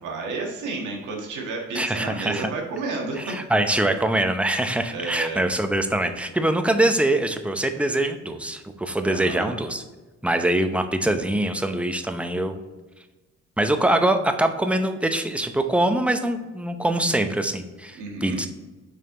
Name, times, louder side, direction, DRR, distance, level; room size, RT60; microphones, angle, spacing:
voice 1, 0.0-3.4 4.9-5.4 9.0-9.5 17.9-18.4, right 3 dB, 80° right, -1 dB, 1.6 m, -31 dB
voice 2, 1.7-2.5 3.2-9.8 10.2-12.6 13.6-18.5, right 1 dB, 5° right, 7 dB, 0.7 m, -23 dB
6.7 x 4.3 x 3.8 m, 1.2 s
cardioid pair, 90°, 30 cm